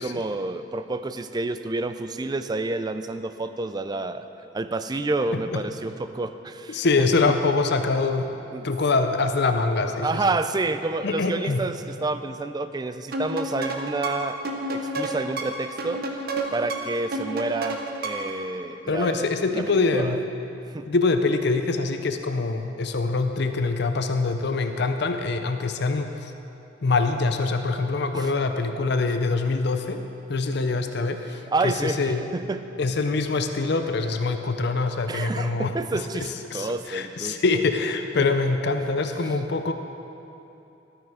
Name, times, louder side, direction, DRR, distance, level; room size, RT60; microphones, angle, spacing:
voice 1, 0.0-4.2 4.5-7.3 8.5-8.7 10.0-14.4 14.7-16.0 16.5-20.2 20.7-20.9 28.1-28.3 31.5-32.6 35.1-36.3 36.5-37.4 38.2-38.3, right 2 dB, 20° right, 10 dB, 0.4 m, -29 dB
voice 2, 6.7-8.3 8.6-10.2 11.0-11.6 18.9-20.2 20.9-26.3 26.8-30.0 30.3-32.2 32.8-35.7 36.2-39.7, left 3 dB, 60° left, 7 dB, 0.6 m, -24 dB
sound 1, 13.1-18.4, right 2 dB, 55° right, 1.0 m, -30 dB
13.0 x 9.0 x 4.9 m, 2.9 s
head